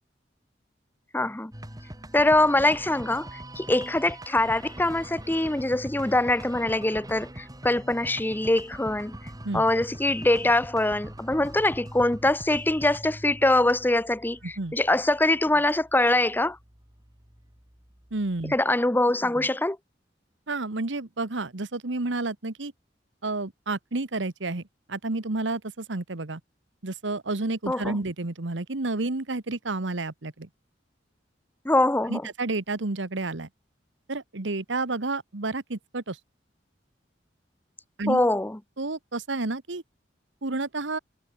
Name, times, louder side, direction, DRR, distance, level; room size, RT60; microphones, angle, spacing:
voice 1, 1.1-1.5 2.1-9.2 9.5-16.6 18.5-19.8 27.7-28.0 31.6-32.2 38.1-38.6, left 2 dB, 10° left, 0.8 m, -23 dB
sound 1, 1.5-18.6, right 1 dB, 20° right, 3.5 m, -43 dB
voice 2, 18.1-18.5 20.5-22.7 23.2-24.6 24.9-26.4 26.8-30.5 32.1-33.5 34.1-36.2 38.0-38.2 38.8-39.8 40.4-41.0, right 2 dB, 85° right, 1.4 m, -30 dB
head